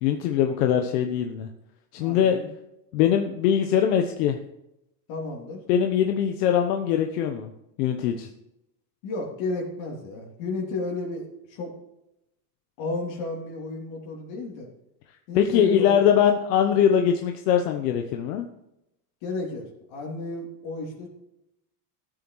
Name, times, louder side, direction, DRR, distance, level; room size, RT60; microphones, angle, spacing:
voice 1, 0.0-1.5 1.9-2.4 2.9-4.4 5.7-7.5 7.8-8.3 15.3-18.5, left 9 dB, 90° left, 5 dB, 1.1 m, -22 dB
voice 2, 2.0-2.5 5.1-5.6 9.0-11.7 12.8-14.7 15.3-16.0 19.2-21.1, left 3 dB, 70° left, -2 dB, 3.2 m, -33 dB
13.0 x 9.0 x 3.1 m, 0.85 s
supercardioid pair, 130°, 46 cm